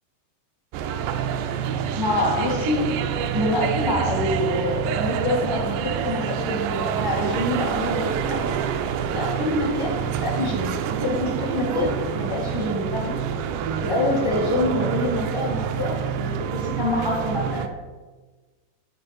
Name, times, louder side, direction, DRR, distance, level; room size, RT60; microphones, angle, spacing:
sound 1, 0.7-17.7, right 8 dB, 85° right, 2.1 m, -27 dB
voice 1, 2.0-2.8 3.3-8.4 9.1-9.9 10.2-13.2 13.8-17.7, left 1 dB, 20° right, -4 dB, 0.5 m, -26 dB
9.0 x 3.9 x 5.8 m, 1.3 s
omnidirectional pair, 3.6 m